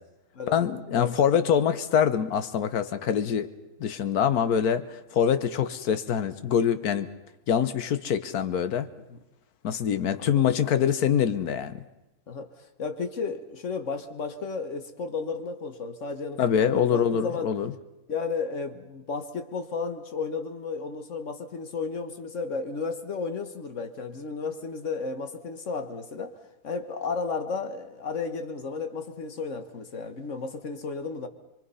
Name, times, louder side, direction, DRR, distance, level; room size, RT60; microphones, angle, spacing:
voice 1, 0.5-3.5 3.8-7.1 7.5-8.9 9.6-11.8 16.4-17.7, left 8 dB, 80° left, 12 dB, 1.5 m, -24 dB
voice 2, 12.8-17.5 18.1-26.3 26.6-31.3, left 4 dB, 55° left, 7 dB, 1.7 m, -33 dB
24.0 x 24.0 x 5.6 m, 0.98 s
omnidirectional pair, 1.6 m